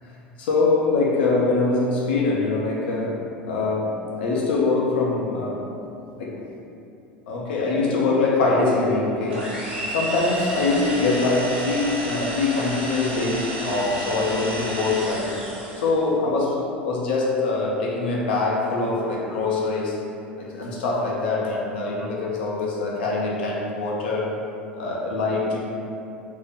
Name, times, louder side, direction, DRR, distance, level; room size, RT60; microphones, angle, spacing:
voice 1, 0.4-5.7 6.2-6.5 7.3-9.5 9.9-15.3 15.8-20.0 20.4-24.3 24.7-25.6, left 3 dB, 70° left, -3 dB, 0.5 m, -23 dB
sound 1, 9.3-16.0, right 1 dB, 80° right, 0.7 m, -31 dB
2.5 x 2.0 x 3.6 m, 2.7 s
figure-of-eight pair, 75°, 6 cm